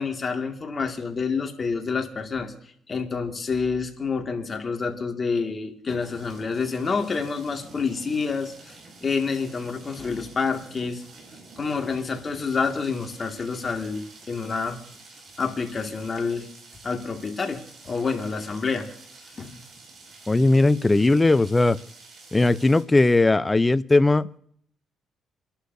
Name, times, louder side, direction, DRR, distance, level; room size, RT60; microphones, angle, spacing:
voice 1, 0.0-2.5 2.9-8.8 9.0-11.0 11.6-14.8 15.4-16.5 16.8-18.9 19.4-19.6 20.4-20.5, left 5 dB, 35° left, 4 dB, 2.0 m, -28 dB
sound 1, 6.0-22.8, right 3 dB, 55° right, 5.9 m, -48 dB
voice 2, 20.3-21.8 22.3-24.4, left 2 dB, 20° left, 15 dB, 0.6 m, -19 dB
29.5 x 11.5 x 2.7 m, 0.65 s
cardioid pair, 90°, 0 cm